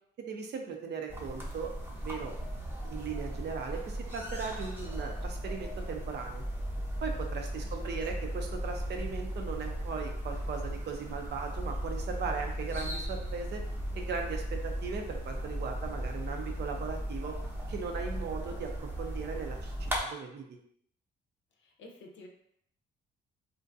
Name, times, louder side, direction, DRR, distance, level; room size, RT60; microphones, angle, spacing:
voice 1, 0.2-2.3 2.8-6.4 7.0-13.6 13.9-17.4 17.7-20.5, right 5 dB, 60° right, 3 dB, 0.5 m, -38 dB
sound 1, 1.1-20.0, equal, 10° right, 0.6 m, -37 dB
voice 2, 7.6-8.3 21.6-22.3, left 2 dB, 70° left, 2 dB, 0.5 m, -52 dB
2.5 x 2.2 x 2.5 m, 0.70 s
cardioid pair, 90°, 20 cm